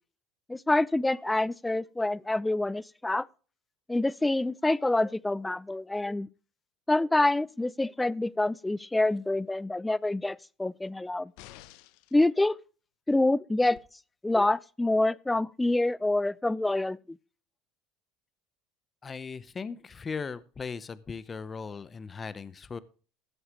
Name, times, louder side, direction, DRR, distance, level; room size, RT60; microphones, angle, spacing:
voice 1, 0.5-3.3 3.9-6.3 6.9-11.3 12.1-12.6 13.1-13.8 14.2-17.0, left 2 dB, 10° left, 0.4 m, -26 dB
sound 1, 11.4-12.2 13.7-13.8, left 15 dB, 75° left, 0.8 m, -50 dB
voice 2, 19.0-22.8, left 5 dB, 25° left, 0.8 m, -38 dB
16.0 x 7.9 x 3.1 m
supercardioid pair, 105°, 0 cm